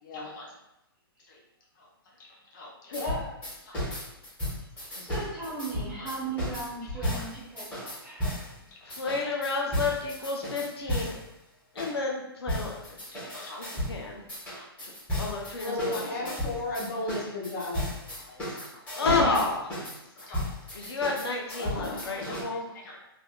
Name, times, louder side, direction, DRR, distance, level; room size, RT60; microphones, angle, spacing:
voice 1, 0.0-0.5 2.2-3.4 3.6-4.0 4.8-5.0 6.0-6.1 7.0-7.2 8.1-8.3 8.7-9.2 9.7-9.8 12.6-12.7 13.1-13.6 14.5-14.7 15.6-19.2 20.2-20.4 20.7-20.9 21.5-22.4 22.7-23.0, left 2 dB, 55° left, -3 dB, 0.9 m, -37 dB
sound 1, 2.9-8.5 8.9-11.2 11.8-11.9 12.5-14.0 14.3-22.4, equal, 10° left, 1.4 m, -34 dB
voice 2, 5.0-8.6 15.8-16.3, right 4 dB, 5° right, -9 dB, 1.1 m, -38 dB
voice 3, 8.8-11.2 11.7-13.0 13.6-14.2 14.8-14.9 15.2-16.4 19.0-19.8 20.7-22.7, left 3 dB, 90° left, 0 dB, 0.6 m, -30 dB
3.3 x 2.5 x 2.3 m, 0.89 s
hypercardioid pair, 145°, 13 cm